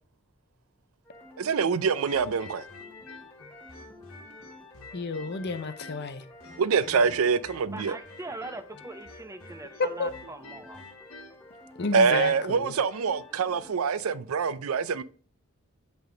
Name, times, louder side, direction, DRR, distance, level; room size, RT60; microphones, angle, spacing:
sound 1, 1.0-13.7, left 2 dB, 10° left, 1.9 m, -51 dB
voice 1, 1.4-2.6 6.6-8.0 11.9-15.0, right 5 dB, 75° right, 0.4 m, -25 dB
sound 2, 2.1-6.1 6.4-12.4, left 3 dB, 70° left, 1.4 m, -48 dB
voice 2, 4.9-6.2 9.8-10.1 11.8-12.7, left 3 dB, 50° left, 0.6 m, -31 dB
voice 3, 7.7-10.8, right 2 dB, 15° right, 0.5 m, -41 dB
8.1 x 3.5 x 4.9 m
head